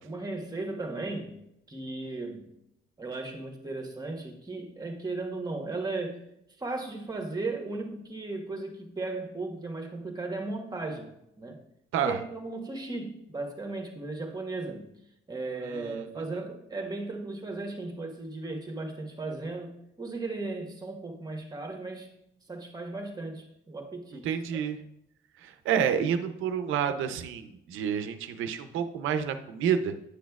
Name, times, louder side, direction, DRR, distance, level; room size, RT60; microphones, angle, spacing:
voice 1, 0.0-2.5 3.0-6.2 6.6-11.6 12.0-14.9 15.3-22.1 22.5-24.7, right 3 dB, 20° right, 3 dB, 1.3 m, -36 dB
voice 2, 15.6-16.0 24.2-24.8 25.4-29.9, right 8 dB, 90° right, 8 dB, 0.7 m, -29 dB
9.8 x 6.3 x 2.4 m, 0.82 s
cardioid pair, 90°, 20 cm